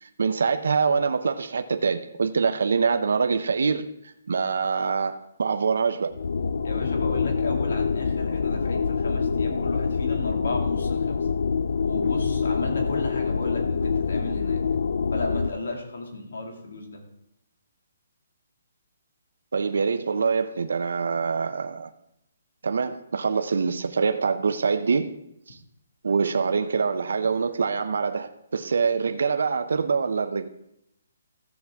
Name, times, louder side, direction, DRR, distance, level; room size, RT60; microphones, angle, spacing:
voice 1, 0.0-6.2 19.5-21.9 22.6-25.1 25.5-25.6 26.0-30.5, right 5 dB, 70° right, 0.6 m, -25 dB
sound 1, 6.1-15.5, left 5 dB, 60° left, 0.4 m, -25 dB
voice 2, 6.6-11.3 11.8-14.6 15.1-17.0, left 2 dB, 75° left, 2.3 m, -34 dB
14.0 x 7.2 x 3.5 m
hypercardioid pair, 180°, 0 cm